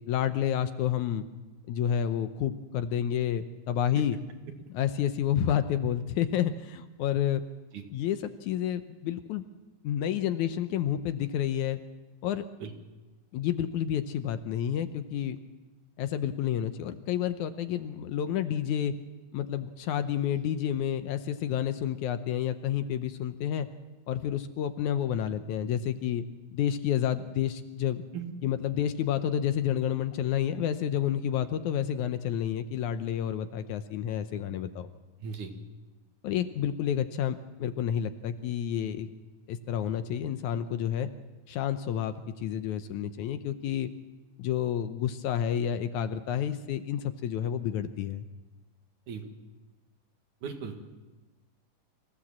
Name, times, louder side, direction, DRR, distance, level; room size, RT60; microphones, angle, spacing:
voice 1, 0.1-1.3 1.7-4.2 4.7-7.4 7.9-9.5 9.8-11.8 12.2-12.5 13.3-15.4 16.0-18.9 19.3-23.7 24.1-26.2 26.5-28.0 28.4-34.9 36.2-39.1 39.5-41.1 41.5-43.9 44.4-48.3, left 10 dB, 75° left, 10 dB, 2.0 m, -30 dB
voice 2, 35.2-35.5 49.1-49.3 50.4-50.9, right 6 dB, 70° right, 5 dB, 3.2 m, -37 dB
25.5 x 16.0 x 7.5 m, 1.2 s
omnidirectional pair, 3.8 m